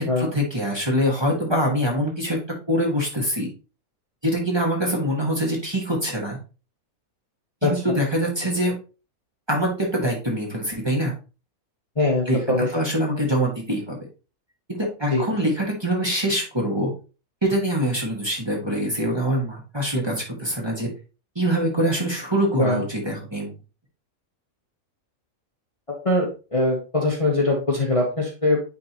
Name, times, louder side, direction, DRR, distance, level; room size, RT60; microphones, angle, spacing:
voice 1, 0.0-2.4 2.7-3.5 4.2-6.4 7.6-8.7 9.5-11.1 12.3-12.4 12.7-13.9 14.7-16.9 17.4-20.9 21.3-23.5, equal, 20° right, -2 dB, 1.6 m, -24 dB
voice 2, 12.0-12.7 15.1-15.2 22.6-22.8 26.0-28.6, left 2 dB, 25° left, -1 dB, 1.2 m, -22 dB
9.6 x 3.8 x 3.0 m, 0.33 s
omnidirectional pair, 1.5 m